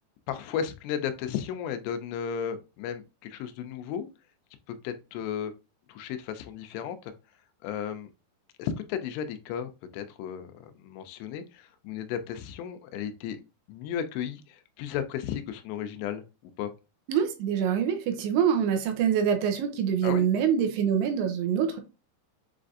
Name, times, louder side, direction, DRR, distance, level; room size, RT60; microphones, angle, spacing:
voice 1, 0.3-4.1 4.7-5.5 5.9-7.1 7.6-8.1 8.6-13.4 13.7-16.2 16.6-16.7 20.0-20.3, left 8 dB, 90° left, 2.7 m, -34 dB
voice 2, 17.1-21.8, right 8 dB, 80° right, 2.6 m, -25 dB
7.2 x 2.5 x 2.5 m
omnidirectional pair, 4.8 m